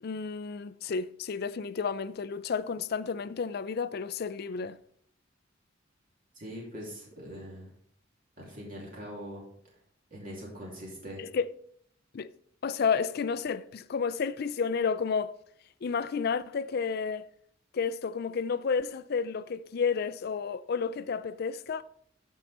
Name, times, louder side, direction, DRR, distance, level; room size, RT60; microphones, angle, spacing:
voice 1, 0.0-4.8 11.2-11.5 12.1-12.3 12.6-15.4 15.8-17.3 17.7-21.8, left 5 dB, 55° left, 0.4 m, -31 dB
voice 2, 6.3-7.7 8.4-9.4 10.1-11.2, equal, 45° right, 2.6 m, -42 dB
13.5 x 4.7 x 4.1 m
head